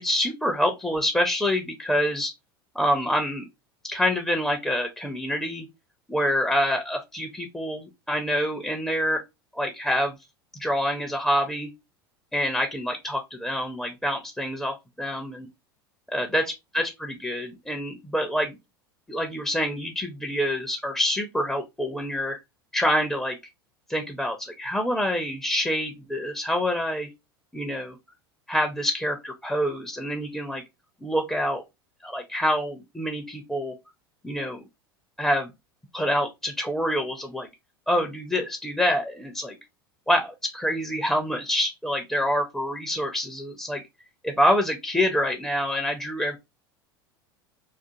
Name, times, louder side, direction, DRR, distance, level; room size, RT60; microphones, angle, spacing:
voice 1, 0.0-2.3 2.7-3.5 3.8-5.7 6.1-9.2 9.5-10.2 10.6-11.7 12.3-15.5 16.1-16.4 16.7-18.5 19.1-22.4 22.7-23.4 23.9-27.1 27.5-28.0 28.5-30.6 31.0-31.6 32.0-33.7 34.2-34.6 35.2-35.5 35.9-37.5 37.9-39.6 40.1-43.8 44.2-46.4, equal, 5° left, 0.5 m, -26 dB
2.4 x 2.4 x 2.7 m
hypercardioid pair, 80°, 12 cm